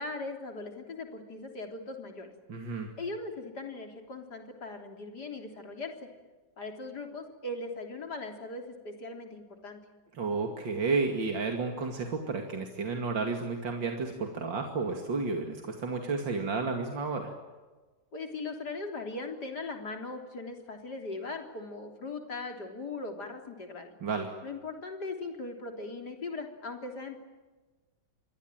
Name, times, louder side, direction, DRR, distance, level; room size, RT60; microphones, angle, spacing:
voice 1, 0.0-2.3 3.0-6.1 6.6-9.8 18.1-23.9 24.4-27.2, left 3 dB, 60° left, 4 dB, 4.1 m, -39 dB
voice 2, 2.5-2.9 10.1-17.3 24.0-24.4, right 4 dB, 90° right, 3 dB, 3.1 m, -32 dB
27.5 x 21.5 x 9.1 m, 1.3 s
omnidirectional pair, 2.0 m